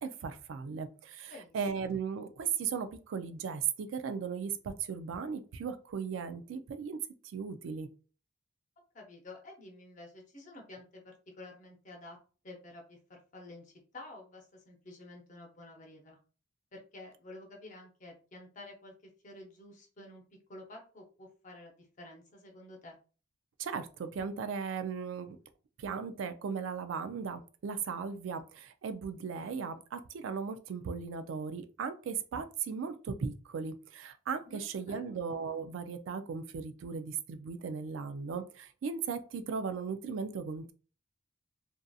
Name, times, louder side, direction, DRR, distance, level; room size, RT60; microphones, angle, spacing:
voice 1, 0.0-7.0 7.2-7.9 23.6-25.4 25.8-40.7, right 6 dB, 80° right, 9 dB, 0.3 m, -37 dB
voice 2, 8.9-12.2 12.4-16.2 16.7-20.2 20.5-23.0 34.4-35.2, left 2 dB, 40° left, 1 dB, 0.7 m, -50 dB
2.6 x 2.4 x 2.3 m, 0.37 s
head